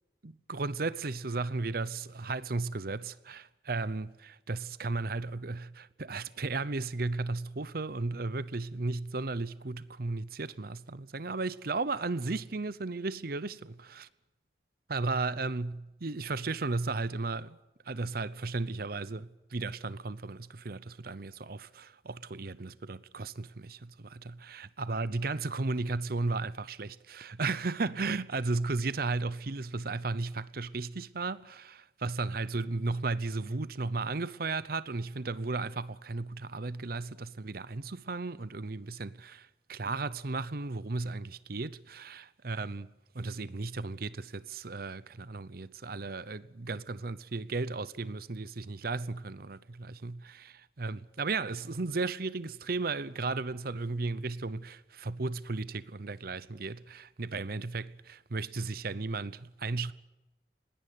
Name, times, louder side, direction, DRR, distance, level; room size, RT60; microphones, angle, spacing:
voice 1, 0.2-14.1 14.9-17.6 17.8-59.9, right 3 dB, 55° right, 0.8 m, -35 dB
21.0 x 17.5 x 9.4 m
head